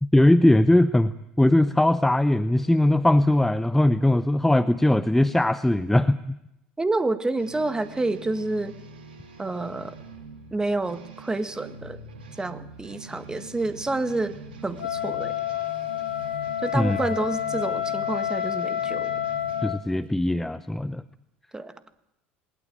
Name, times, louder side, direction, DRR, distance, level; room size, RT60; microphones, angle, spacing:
voice 1, 0.0-6.4 16.7-17.0 19.6-21.0, left 1 dB, 5° left, 15 dB, 0.7 m, -20 dB
voice 2, 6.8-8.7 9.4-9.9 10.5-12.0 12.4-14.4 14.6-15.3 16.6-19.2 21.5-21.7, right 2 dB, 15° right, 11 dB, 1.7 m, -28 dB
sound 1, 7.4-19.7, right 3 dB, 75° right, 3.0 m, -44 dB
Wind instrument woodwind instrument, 14.8-19.8, left 11 dB, 80° left, 2.1 m, -29 dB
21.0 x 18.5 x 8.8 m, 0.87 s
figure-of-eight pair, 65°, 5 cm